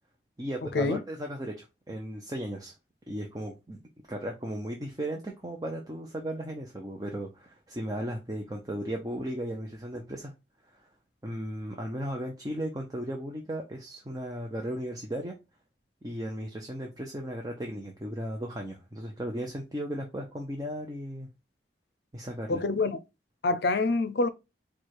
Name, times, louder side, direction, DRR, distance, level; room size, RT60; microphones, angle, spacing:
voice 1, 0.4-2.7 3.1-3.8 4.1-10.3 10.7-10.9 11.2-15.3 16.0-21.3 22.1-22.6, right 1 dB, 20° right, 0.7 m, -36 dB
voice 2, 22.5-23.0 23.4-24.3, left 3 dB, 65° left, 0.6 m, -26 dB
4.7 x 2.4 x 4.6 m
head